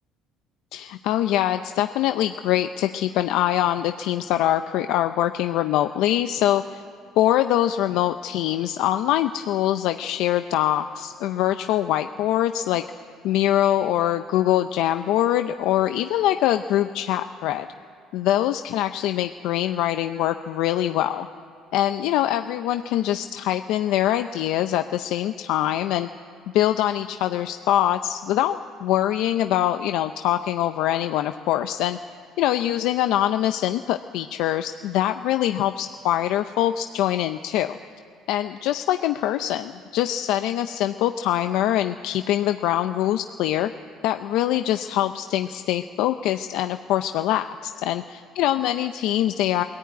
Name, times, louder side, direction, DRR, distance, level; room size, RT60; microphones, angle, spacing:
voice 1, 0.7-6.8 7.2-12.8 13.2-17.7 18.1-21.3 21.7-26.1 26.5-32.0 32.4-37.8 38.3-43.7 44.0-49.6, left 12 dB, 75° left, 8 dB, 0.6 m, -23 dB
22.0 x 14.5 x 9.3 m, 2.6 s
cardioid pair, 135°, 0 cm